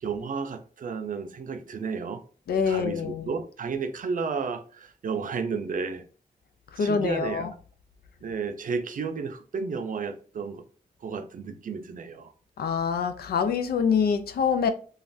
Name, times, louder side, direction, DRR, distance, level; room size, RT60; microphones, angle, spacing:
voice 1, 0.0-2.2 2.7-6.0 6.8-7.5 8.2-10.6 11.0-12.3, right 5 dB, 60° right, 0.5 m, -32 dB
voice 2, 2.5-3.3 6.7-7.5 12.6-14.7, left 6 dB, 85° left, 0.4 m, -25 dB
3.1 x 2.3 x 2.5 m
wide cardioid pair, 95°, 16 cm